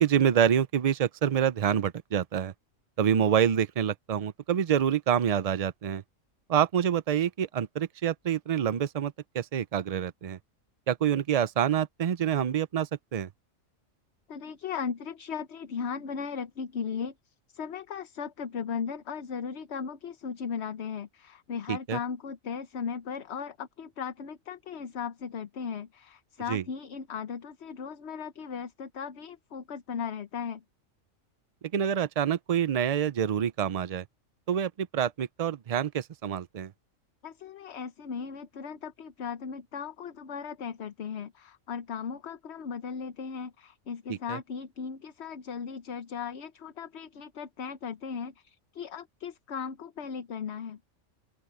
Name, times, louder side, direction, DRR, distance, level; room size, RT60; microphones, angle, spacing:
voice 1, 0.0-2.5 3.0-6.0 6.5-10.4 10.9-13.3 21.7-22.0 26.5-26.6 31.7-34.0 34.5-36.7 44.3-44.4, right 9 dB, 65° right, 0.3 m, -27 dB
voice 2, 14.3-17.1 17.5-30.6 37.2-50.8, left 6 dB, 60° left, 1.1 m, -37 dB
open air
omnidirectional pair, 1.4 m